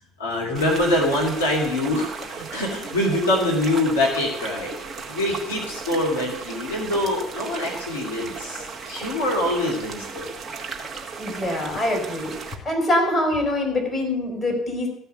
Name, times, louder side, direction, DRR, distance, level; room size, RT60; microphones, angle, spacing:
voice 1, 0.2-4.8 5.1-10.3, left 1 dB, 80° left, -2 dB, 2.9 m, -24 dB
sound 1, 0.5-12.5, right 4 dB, 30° right, 2.3 m, -36 dB
voice 2, 11.2-12.4 12.6-14.9, left 1 dB, 20° left, 1 dB, 5.2 m, -24 dB
15.0 x 5.7 x 9.1 m, 0.76 s
figure-of-eight pair, 55°, 0 cm